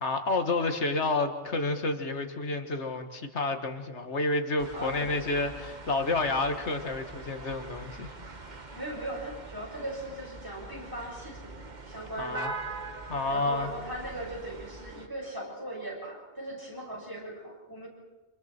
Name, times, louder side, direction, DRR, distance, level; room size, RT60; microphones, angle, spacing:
voice 1, 0.0-8.1 12.2-12.5 13.1-13.7, left 2 dB, 75° left, 7 dB, 1.9 m, -30 dB
sound 1, 4.6-15.1, right 3 dB, 40° right, 1.5 m, -43 dB
voice 2, 4.7-5.1 8.7-12.6 13.3-17.9, right 1 dB, 15° right, -3 dB, 6.8 m, -39 dB
28.5 x 27.5 x 4.5 m, 1.2 s
omnidirectional pair, 1.2 m